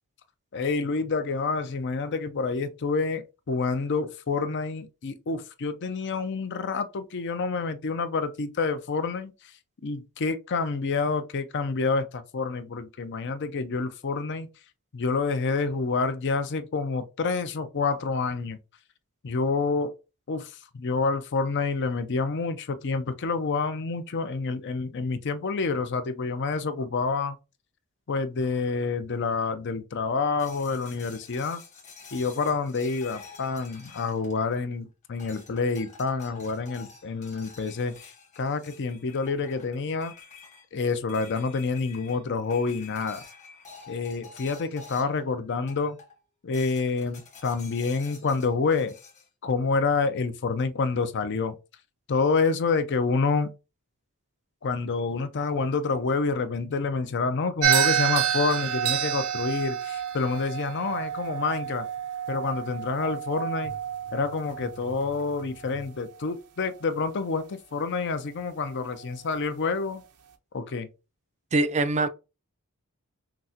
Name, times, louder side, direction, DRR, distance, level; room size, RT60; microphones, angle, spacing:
voice 1, 0.5-9.3 9.8-14.5 14.9-18.6 19.2-19.9 20.3-27.4 28.1-31.6 32.1-38.0 38.4-40.1 40.7-43.2 43.9-46.0 46.4-48.9 49.4-51.5 52.1-53.5 54.6-61.9 62.3-63.7 64.1-70.0 70.5-70.9, left 4 dB, 50° left, 0.5 m, -28 dB
sound 1, 30.4-34.8 35.2-45.3 45.7-46.2 46.5-49.3, left 5 dB, 35° left, 1.3 m, -49 dB
sound 2, 57.6-66.0, right 10 dB, 90° right, 0.7 m, -29 dB
voice 2, 71.5-72.1, right 2 dB, 30° right, 0.4 m, -23 dB
6.0 x 2.1 x 2.8 m
head